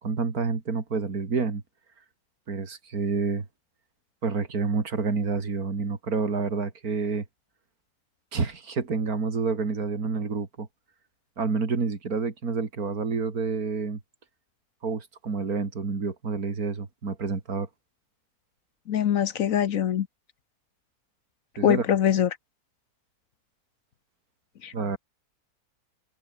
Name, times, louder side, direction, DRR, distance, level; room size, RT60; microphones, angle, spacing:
voice 1, 0.0-1.6 2.5-3.4 4.2-7.2 8.3-10.7 11.4-14.0 14.8-17.7 21.6-21.8 24.7-25.0, right 4 dB, 75° right, 3.2 m, -28 dB
voice 2, 18.9-20.1 21.6-22.3 24.6-24.7, left 9 dB, 65° left, 1.2 m, -23 dB
omnidirectional pair, 1.6 m